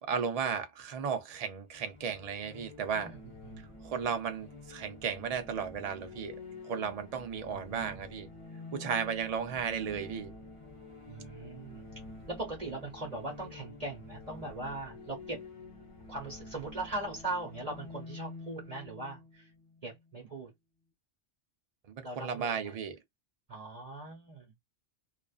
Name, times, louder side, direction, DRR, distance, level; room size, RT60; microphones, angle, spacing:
voice 1, 0.0-3.1 3.8-6.4 6.6-8.3 8.7-10.3 22.0-23.0, right 7 dB, 55° right, 0.4 m, -34 dB
sound 1, 1.7-20.4, left 2 dB, 30° left, 0.7 m, -49 dB
voice 2, 2.9-3.6 7.3-8.0 11.1-11.9 12.3-15.4 16.1-19.5 19.8-20.5 22.0-22.7 23.5-24.5, right 2 dB, 35° right, 0.9 m, -40 dB
2.4 x 2.3 x 2.3 m
omnidirectional pair, 1.2 m